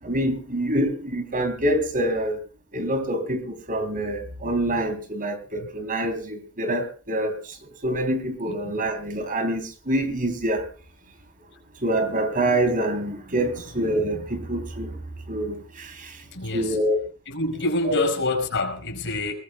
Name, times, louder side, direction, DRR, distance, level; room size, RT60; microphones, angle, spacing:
voice 1, 0.0-2.4 2.7-10.7 11.8-15.0 15.3-16.2 16.5-17.0 17.8-18.1, right 1 dB, 40° right, 3.4 m, -26 dB
voice 2, 8.5-8.9 16.3-16.8 17.3-19.3, left 2 dB, 60° left, 4.8 m, -27 dB
21.5 x 20.0 x 2.3 m
head